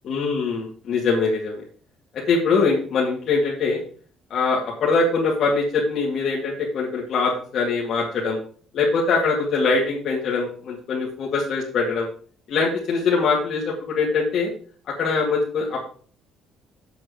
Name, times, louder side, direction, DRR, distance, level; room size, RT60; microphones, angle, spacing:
voice 1, 0.0-1.6 2.1-3.8 4.3-8.4 8.7-12.1 12.5-14.5 14.9-15.8, left 4 dB, 50° left, -4 dB, 2.3 m, -22 dB
7.9 x 7.5 x 5.0 m, 0.44 s
cardioid pair, 155°, 0 cm